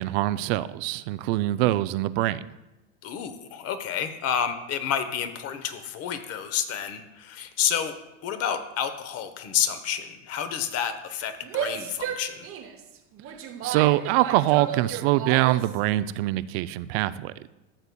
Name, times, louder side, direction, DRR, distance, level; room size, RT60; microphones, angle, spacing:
voice 1, 0.0-2.4 13.6-17.5, right 16 dB, 55° right, 16 dB, 0.4 m, -24 dB
voice 2, 3.0-7.9 8.2-12.5, left 8 dB, 40° left, 10 dB, 0.9 m, -29 dB
Female speech woman speaking / Yell, 11.4-15.8, right 9 dB, 35° right, 0.9 m, -33 dB
14.0 x 6.8 x 2.2 m, 0.96 s
hypercardioid pair, 105°, 37 cm